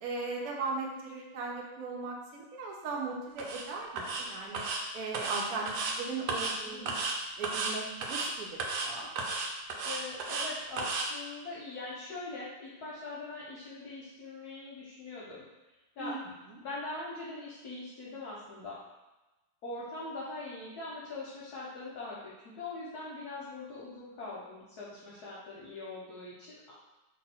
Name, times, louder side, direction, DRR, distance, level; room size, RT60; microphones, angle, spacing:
voice 1, 0.0-4.6 4.9-7.1 7.4-9.1 16.0-16.2 16.5-16.6, right 3 dB, 65° right, -1 dB, 1.0 m, -38 dB
sound 1, 3.4-3.6 4.0-4.2 4.5-4.8 5.1-5.9 6.3-6.6 6.9-7.2 7.4-7.7 8.0-8.3 8.6-8.9 9.2-10.5 10.8-11.1, right 3 dB, 80° right, 1.3 m, -33 dB
voice 2, 6.6-6.9 9.8-15.5 16.0-16.2 16.6-18.8 19.6-26.7, left 2 dB, 65° left, -7 dB, 1.1 m, -42 dB
2.9 x 2.6 x 4.2 m, 1.1 s
omnidirectional pair, 2.1 m